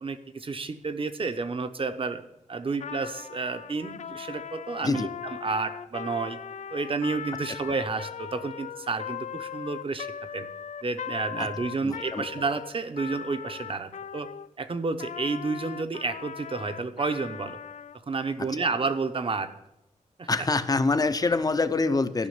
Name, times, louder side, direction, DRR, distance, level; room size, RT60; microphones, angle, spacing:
voice 1, 0.0-2.2 2.5-6.4 6.7-10.5 10.8-14.3 14.6-17.6 18.1-19.5 20.2-20.3, right 4 dB, 40° right, 10 dB, 0.9 m, -30 dB
Trumpet, 2.7-14.5 15.0-18.0, left 8 dB, 60° left, 0.4 m, -39 dB
voice 2, 11.8-12.3 18.4-18.7 20.3-22.3, left 3 dB, 30° left, 12 dB, 0.7 m, -26 dB
12.5 x 6.3 x 9.5 m, 0.88 s
wide cardioid pair, 140°, 14 cm